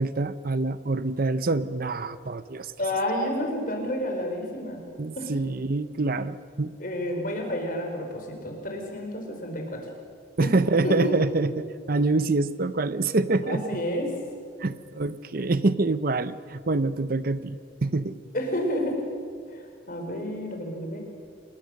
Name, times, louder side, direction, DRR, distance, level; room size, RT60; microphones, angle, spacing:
voice 1, 0.0-2.7 5.0-6.7 10.4-13.6 14.6-18.2, right 3 dB, 50° right, 14 dB, 0.7 m, -26 dB
voice 2, 2.8-4.8 5.2-5.3 6.8-9.9 10.4-10.5 10.8-11.2 13.5-14.2 18.3-19.0 19.5-21.0, left 1 dB, 50° left, 2 dB, 4.8 m, -30 dB
28.5 x 21.0 x 6.5 m, 2.1 s
head